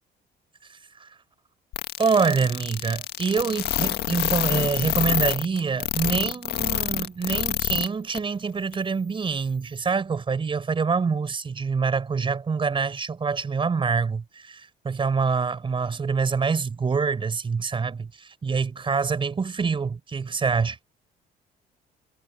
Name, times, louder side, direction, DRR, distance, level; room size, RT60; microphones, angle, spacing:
sound 1, 1.7-7.9 8.1-8.2 8.7-8.8, left 13 dB, 75° left, 1.8 m, -26 dB
voice 1, 2.0-20.8, right 5 dB, 30° right, 5.1 m, -25 dB
cardioid pair, 110°, 17 cm